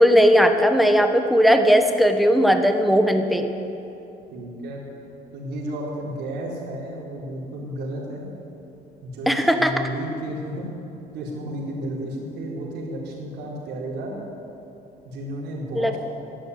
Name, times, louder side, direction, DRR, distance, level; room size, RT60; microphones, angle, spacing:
voice 1, 0.0-3.5 9.3-9.7 15.7-16.0, equal, ahead, 7 dB, 1.2 m, -17 dB
voice 2, 4.3-4.8 5.3-8.3 9.0-10.7 11.1-14.2 15.0-16.0, right 1 dB, 80° right, -3 dB, 4.3 m, -32 dB
12.5 x 11.5 x 9.5 m, 3.0 s
cardioid pair, 110°, 17 cm